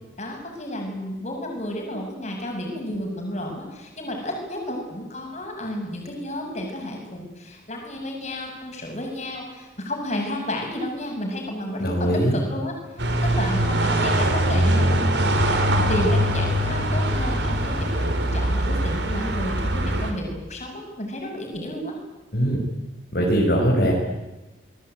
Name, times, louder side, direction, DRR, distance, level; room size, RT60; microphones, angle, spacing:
voice 1, 0.2-21.9, left 1 dB, 35° left, 1 dB, 7.5 m, -32 dB
voice 2, 11.8-12.4 22.3-22.6 23.1-23.9, equal, 55° left, -2 dB, 5.7 m, -21 dB
sound 1, 13.0-20.1, right 1 dB, 65° right, 4.1 m, -22 dB
25.5 x 21.5 x 9.4 m, 1.0 s
head